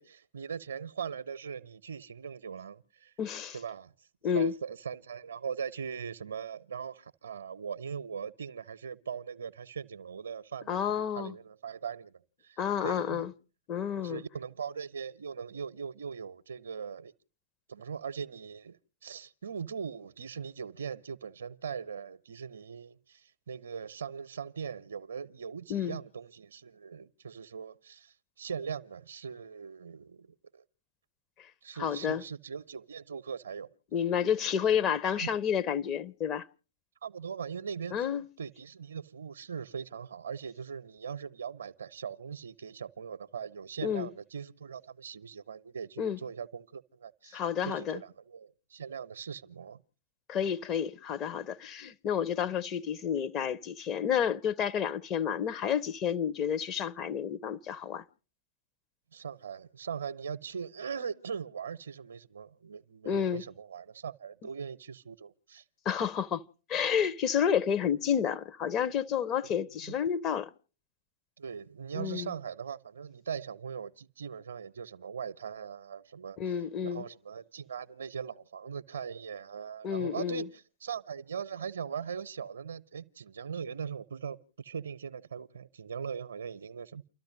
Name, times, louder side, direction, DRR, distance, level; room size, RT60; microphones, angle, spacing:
voice 1, 0.0-3.1 3.5-3.9 4.3-12.6 12.8-13.3 14.0-17.1 17.7-30.3 30.5-30.6 31.6-33.7 35.2-35.3 37.0-38.1 38.4-49.8 59.1-65.6 69.9-70.0 71.4-76.4 76.8-87.0, right 7 dB, 70° right, 0.6 m, -40 dB
voice 2, 3.2-3.6 4.2-4.5 10.7-11.3 12.6-13.3 13.7-14.2 25.7-26.0 31.8-32.2 33.9-36.5 37.9-38.2 43.8-44.1 46.0-46.2 47.3-48.0 50.3-58.0 63.1-63.4 65.8-66.4 66.7-70.5 71.9-72.3 76.4-77.0 79.8-80.5, left 8 dB, 35° left, 0.7 m, -30 dB
29.5 x 13.0 x 2.6 m
figure-of-eight pair, 90°, 0 cm